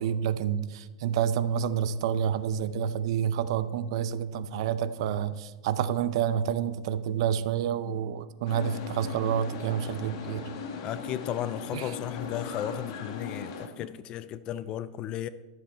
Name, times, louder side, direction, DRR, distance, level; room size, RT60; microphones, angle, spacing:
voice 1, 0.0-10.4 11.7-11.9, right 8 dB, 65° right, 0.5 m, -29 dB
sound 1, 8.5-13.7, left 5 dB, 60° left, 1.4 m, -39 dB
voice 2, 10.8-15.3, left 11 dB, 30° left, 0.3 m, -35 dB
12.5 x 7.2 x 4.4 m
supercardioid pair, 160°, 3 cm